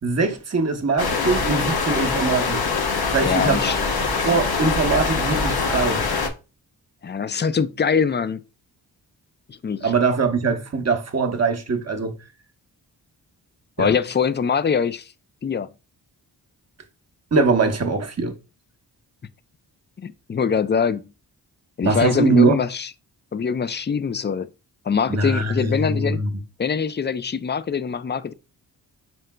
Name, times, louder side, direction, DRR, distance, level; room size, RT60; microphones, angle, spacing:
voice 1, 0.0-2.7 3.1-3.6 4.2-6.0 9.8-12.1 13.8-13.9 17.3-18.3 21.8-22.6 25.1-26.3, right 4 dB, 35° right, 0.9 m, -22 dB
sound 1, 1.0-6.3, left 4 dB, 60° left, 1.1 m, -23 dB
voice 2, 3.2-3.8 7.0-8.4 9.5-9.9 13.8-15.1 15.4-15.7 20.0-21.1 21.8-22.9 23.3-24.5 24.9-26.2 26.6-28.3, left 6 dB, 25° left, 0.4 m, -23 dB
4.4 x 3.7 x 2.2 m
cardioid pair, 50°, 42 cm